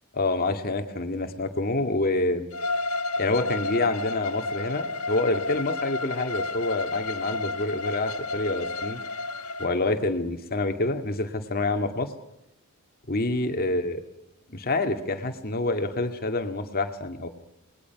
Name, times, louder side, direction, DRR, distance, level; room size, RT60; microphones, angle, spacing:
voice 1, 0.1-2.5 3.2-9.0 9.6-12.1 13.1-14.0 14.5-17.3, left 2 dB, 45° left, 6 dB, 2.1 m, -27 dB
Bowed string instrument, 2.5-9.7, left 3 dB, 85° left, 1.3 m, -31 dB
27.5 x 21.0 x 6.0 m, 0.82 s
head